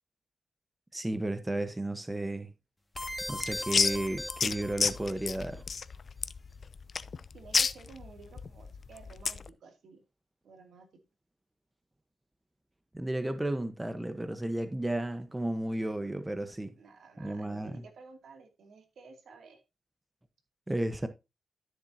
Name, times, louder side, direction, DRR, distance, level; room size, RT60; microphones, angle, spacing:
voice 1, 0.9-2.5 3.3-5.6 12.9-16.7 17.2-17.7 20.7-21.1, right 1 dB, 15° right, 1.1 m, -33 dB
sound 1, 3.0-9.5, left 5 dB, 50° left, 0.6 m, -31 dB
sound 2, 3.0-5.3, left 1 dB, 10° left, 1.8 m, -39 dB
voice 2, 7.3-10.0 10.4-10.9 16.8-19.6, right 4 dB, 75° right, 2.6 m, -53 dB
12.5 x 7.2 x 2.8 m
cardioid pair, 80°, 0 cm